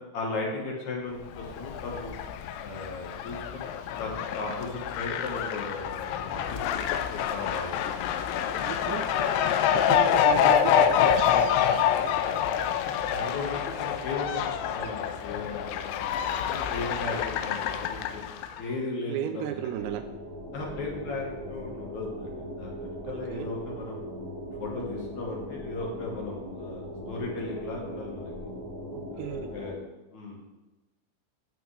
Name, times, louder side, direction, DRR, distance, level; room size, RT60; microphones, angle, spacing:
voice 1, 0.0-2.1 2.6-8.0 8.9-9.0 12.8-16.0 16.4-18.2 18.6-19.5 20.5-24.0 24.6-28.3 29.1-29.7 30.1-30.6, left 3 dB, 60° left, -2 dB, 2.0 m, -36 dB
Fowl, 1.3-18.6, left 9 dB, 85° left, 2.5 m, -27 dB
voice 2, 8.6-9.3 9.7-11.5 19.1-20.1 23.0-23.5 28.9-29.6, right 10 dB, 85° right, 8 dB, 2.7 m, -35 dB
sound 1, 19.7-29.8, equal, 15° right, 1.4 m, -39 dB
12.0 x 7.1 x 3.3 m, 1.1 s
omnidirectional pair, 5.2 m